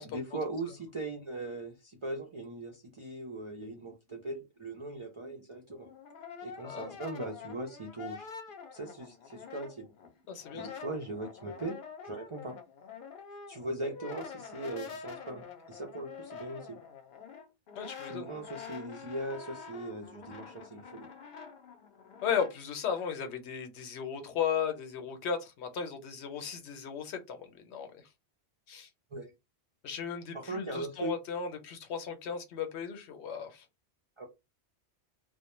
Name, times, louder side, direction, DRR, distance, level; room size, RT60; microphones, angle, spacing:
voice 1, 0.1-5.9 6.4-8.3 8.7-9.9 10.5-12.6 13.5-16.8 18.1-21.1 29.1-29.3 30.3-31.1 34.2-34.3, right 2 dB, 55° right, 0.3 m, -39 dB
Brass instrument, 5.7-10.1 10.4-22.5, left 6 dB, 60° left, 0.6 m, -47 dB
voice 2, 6.6-6.9 10.3-10.7 17.8-18.3 22.2-27.9 28.7-28.9 29.8-33.6, left 7 dB, 85° left, 0.9 m, -35 dB
2.1 x 2.1 x 2.9 m
omnidirectional pair, 1.1 m